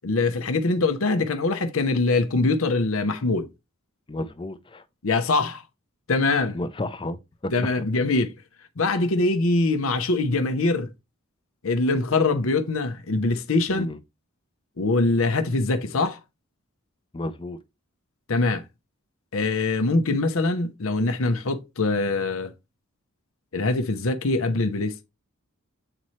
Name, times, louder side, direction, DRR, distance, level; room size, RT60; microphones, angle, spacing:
voice 1, 0.0-3.5 5.0-5.6 6.1-6.6 7.5-8.3 8.8-10.9 11.6-13.9 14.8-16.2 18.3-18.6 19.3-22.5 23.5-25.0, left 3 dB, 70° left, 0.7 m, -23 dB
voice 2, 4.1-4.8 6.5-7.5 13.7-14.0 17.1-17.6, left 1 dB, 25° left, 0.6 m, -32 dB
7.7 x 4.2 x 3.1 m
head